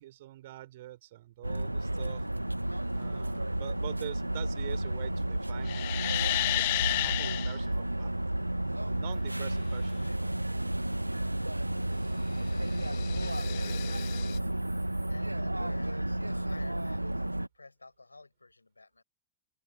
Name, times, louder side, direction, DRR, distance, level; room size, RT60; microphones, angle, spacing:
voice 1, 0.0-2.2 2.9-6.0 6.5-8.3 8.9-10.6, right 15 dB, 55° right, 4.0 m, -45 dB
sound 1, 1.4-17.5, right 1 dB, 85° right, 0.4 m, -32 dB
sound 2, 5.6-7.6 12.4-14.4, left 17 dB, 55° left, 0.7 m, -32 dB
voice 2, 12.4-13.7 14.3-19.0, left 3 dB, 80° left, 6.6 m, -53 dB
open air
figure-of-eight pair, 90°, 0 cm